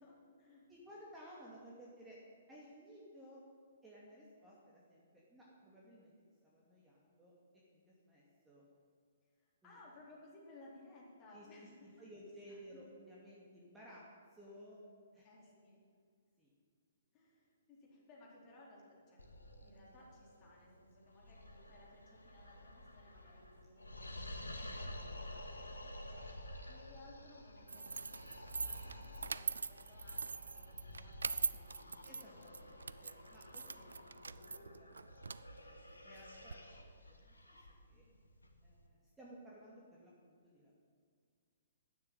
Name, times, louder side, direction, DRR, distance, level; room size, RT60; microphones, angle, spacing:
voice 1, 0.0-0.7 9.3-12.1 12.5-12.8 15.2-15.8 17.1-26.3 26.7-32.4 33.3-34.1 37.9-38.2, left 2 dB, 25° left, -4 dB, 4.3 m, -61 dB
voice 2, 0.7-2.2 2.5-3.4 3.8-5.0 5.3-6.1 6.4-7.3 7.7-8.6 9.6-9.7 11.3-11.5 12.0-14.0 14.3-14.8 15.1-15.3 16.4-16.5 32.1-33.8 34.2-34.9 35.5-38.0 38.6-40.8, equal, 10° right, -6 dB, 2.5 m, -57 dB
sound 1, 19.2-38.8, left 1 dB, 80° left, 1.5 m, -51 dB
sound 2, 27.7-36.5, right 4 dB, 70° right, 0.4 m, -43 dB
11.0 x 9.5 x 9.3 m, 2.1 s
figure-of-eight pair, 125°, 0 cm